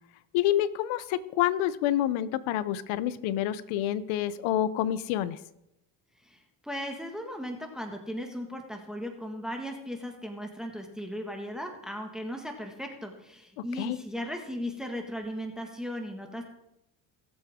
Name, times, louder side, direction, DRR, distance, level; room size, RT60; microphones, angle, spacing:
voice 1, 0.3-5.4 13.6-14.0, left 12 dB, 80° left, 16 dB, 0.8 m, -28 dB
voice 2, 6.2-16.4, equal, ahead, 3 dB, 1.7 m, -37 dB
20.5 x 7.9 x 3.7 m, 0.85 s
cardioid pair, 100°, 47 cm